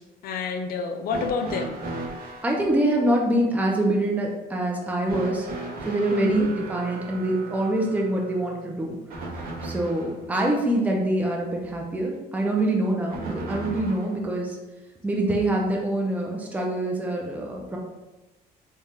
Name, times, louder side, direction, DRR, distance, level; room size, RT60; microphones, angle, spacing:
voice 1, 0.0-1.8 6.1-6.5, left 5 dB, 60° left, 6 dB, 0.4 m, -29 dB
sound 1, 1.1-2.5 5.1-10.2 13.1-14.2 15.4-15.5 16.5-16.6, right 2 dB, 60° right, 1.1 m, -36 dB
voice 2, 2.4-5.5 5.8-9.0 9.3-14.6 15.0-17.8, right 1 dB, 10° right, -1 dB, 0.6 m, -25 dB
3.6 x 2.3 x 4.2 m, 1.1 s
cardioid pair, 110°, 17 cm